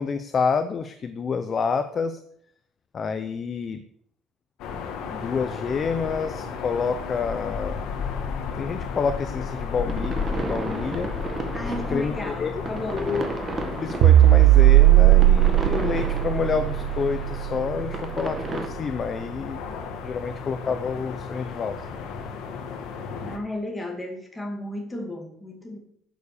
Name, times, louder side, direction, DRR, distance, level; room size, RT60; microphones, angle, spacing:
voice 1, 0.0-2.2 2.9-3.8 4.7-4.8 5.1-7.8 8.6-11.1 11.7-12.5 12.9-13.3 13.8-19.6 20.0-21.8, left 5 dB, 25° left, 10 dB, 0.6 m, -28 dB
sound 1, 4.6-23.4, left 5 dB, 60° left, 1.7 m, -34 dB
sound 2, 9.5-18.7, right 3 dB, 20° right, 1.4 m, -34 dB
voice 2, 11.5-13.2 23.2-25.8, left 1 dB, 10° left, 2 dB, 2.3 m, -33 dB
sound 3, 14.0-18.5, right 15 dB, 65° right, 0.4 m, -17 dB
11.5 x 7.2 x 6.9 m, 0.69 s
cardioid pair, 170°, 0 cm